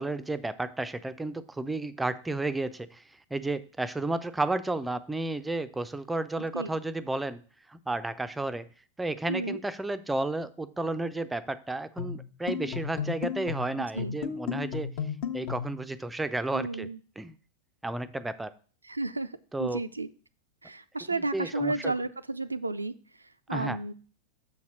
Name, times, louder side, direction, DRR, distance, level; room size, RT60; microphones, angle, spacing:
voice 1, 0.0-3.0 3.3-7.4 7.7-8.7 9.0-14.9 15.3-16.9 17.2-17.4 17.8-18.5 19.5-19.8 21.1-21.9 23.5-23.8, right 2 dB, 10° right, 13 dB, 0.4 m, -32 dB
voice 2, 9.3-9.6 13.8-14.2 16.5-17.0 18.8-19.3 19.6-20.1 20.6-22.9 23.5-23.9, right 2 dB, 80° right, 11 dB, 0.4 m, -32 dB
sound 1, 12.0-15.8, left 7 dB, 50° left, 0.9 m, -34 dB
7.0 x 4.1 x 6.0 m, 0.40 s
figure-of-eight pair, 90°, 0 cm